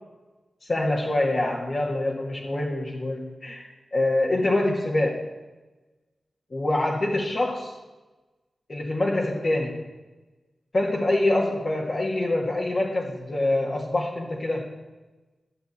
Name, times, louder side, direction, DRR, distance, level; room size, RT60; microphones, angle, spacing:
voice 1, 0.7-5.2 6.5-7.7 8.7-9.9 10.7-14.7, left 1 dB, 45° left, -3 dB, 1.6 m, -25 dB
11.5 x 6.9 x 8.4 m, 1.2 s
wide cardioid pair, 75°, 0 cm